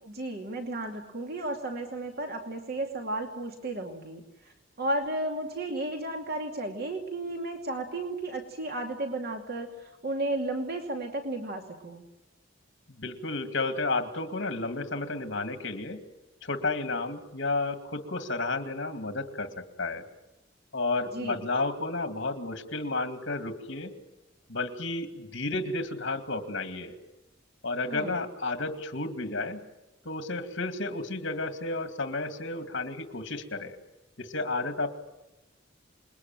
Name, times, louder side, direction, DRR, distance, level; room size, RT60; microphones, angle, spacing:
voice 1, 0.0-12.0 21.1-21.4 27.9-28.2, right 2 dB, 55° right, 3 dB, 2.6 m, -34 dB
voice 2, 13.0-16.0 16.4-20.0 20.7-23.9 24.5-27.0 27.6-29.6 30.1-33.8 34.2-35.0, left 3 dB, 70° left, 7 dB, 2.3 m, -32 dB
28.5 x 21.5 x 9.1 m, 0.99 s
head